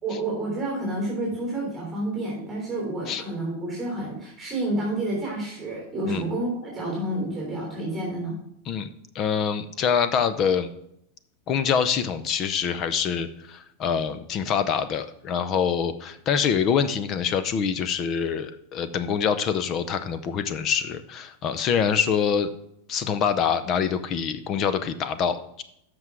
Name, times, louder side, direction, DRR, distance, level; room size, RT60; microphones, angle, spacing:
voice 1, 0.0-8.3, right 1 dB, 10° right, -4 dB, 3.4 m, -29 dB
voice 2, 9.1-10.7 11.5-22.5 22.9-25.6, left 7 dB, 30° left, 12 dB, 0.5 m, -25 dB
7.8 x 6.1 x 4.7 m, 0.75 s
supercardioid pair, 160°, 0 cm